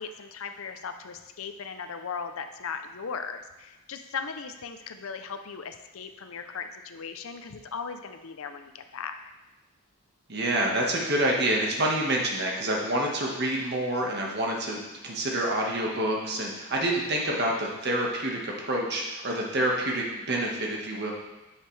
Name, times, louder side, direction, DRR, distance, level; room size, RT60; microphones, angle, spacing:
voice 1, 0.0-9.2, left 5 dB, 70° left, 7 dB, 0.6 m, -38 dB
voice 2, 10.3-21.1, right 1 dB, 50° right, -1 dB, 1.4 m, -27 dB
9.1 x 6.5 x 3.3 m, 1.0 s
head